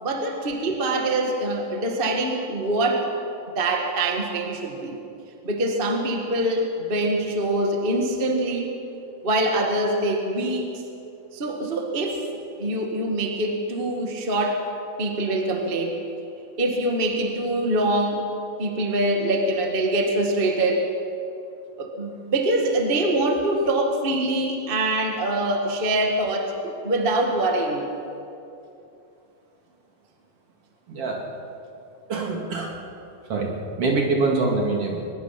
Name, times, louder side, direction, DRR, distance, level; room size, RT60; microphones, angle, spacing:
voice 1, 0.0-3.1 3.5-5.0 5.4-8.7 9.2-10.8 11.3-12.2 12.6-14.7 15.0-16.0 16.6-18.2 18.6-20.9 21.8-27.9, right 1 dB, 25° right, 2 dB, 1.2 m, -24 dB
voice 2, 30.9-31.2 32.1-32.7 33.3-33.5 33.8-35.0, right 3 dB, 45° right, 0 dB, 3.3 m, -24 dB
22.5 x 21.0 x 5.9 m, 2.7 s
omnidirectional pair, 3.8 m